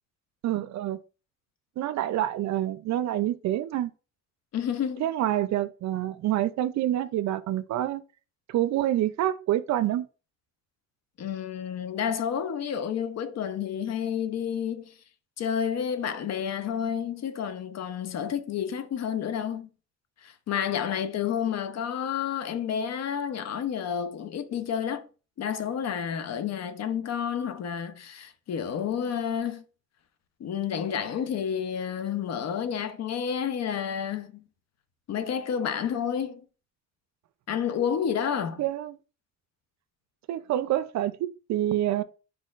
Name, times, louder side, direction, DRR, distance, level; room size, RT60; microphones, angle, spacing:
voice 1, 0.4-1.0 1.8-3.9 5.0-8.0 8.5-10.1 38.6-39.0 40.3-42.0, right 13 dB, 65° right, 0.4 m, -27 dB
voice 2, 4.5-5.1 11.2-14.9 15.4-19.7 20.2-25.0 25.4-29.6 30.4-34.5 35.1-36.4 37.5-38.6, left 8 dB, 60° left, 0.7 m, -30 dB
4.4 x 4.2 x 2.4 m
cardioid pair, 90°, 30 cm